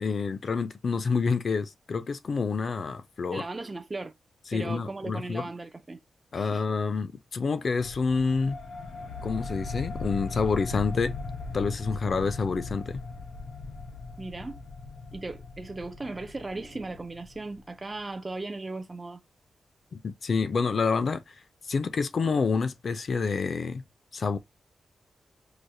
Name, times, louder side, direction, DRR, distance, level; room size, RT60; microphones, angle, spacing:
voice 1, 0.0-3.4 4.5-5.5 6.3-8.6 9.2-11.1 11.5-13.0 19.9-21.2 21.7-23.8 24.1-24.4, left 4 dB, 50° left, 0.4 m, -28 dB
voice 2, 3.3-4.1 4.5-6.0 6.3-6.6 12.1-12.2 14.2-14.6 15.1-19.2, right 2 dB, 20° right, 0.3 m, -37 dB
sound 1, 7.8-18.0, left 3 dB, 75° left, 0.8 m, -39 dB
4.8 x 2.0 x 2.6 m
wide cardioid pair, 145°, 0 cm